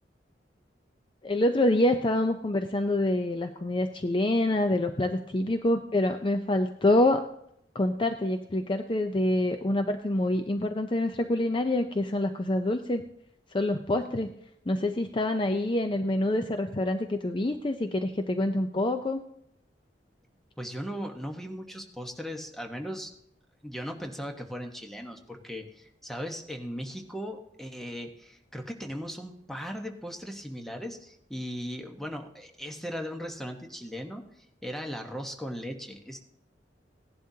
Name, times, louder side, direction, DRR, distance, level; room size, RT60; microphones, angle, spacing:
voice 1, 1.2-7.2 7.7-13.0 13.5-14.3 14.7-19.2, left 1 dB, 30° left, 7 dB, 0.5 m, -26 dB
voice 2, 20.6-23.1 23.6-34.2 34.6-36.2, equal, ahead, 3 dB, 1.1 m, -38 dB
17.0 x 11.0 x 2.8 m, 0.73 s
head